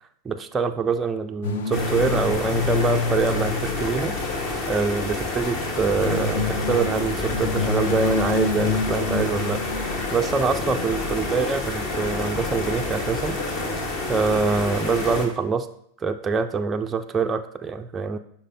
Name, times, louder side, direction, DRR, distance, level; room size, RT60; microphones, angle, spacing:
voice 1, 0.3-4.1 4.7-13.8 14.1-15.7 16.0-18.2, right 5 dB, 15° right, 6 dB, 0.3 m, -25 dB
sound 1, 1.4-4.8 5.7-10.5, left 4 dB, 55° left, 0.6 m, -28 dB
sound 2, 1.7-15.3, left 2 dB, 35° left, 1.1 m, -28 dB
11.5 x 4.2 x 2.6 m, 0.68 s
figure-of-eight pair, 90°, 0 cm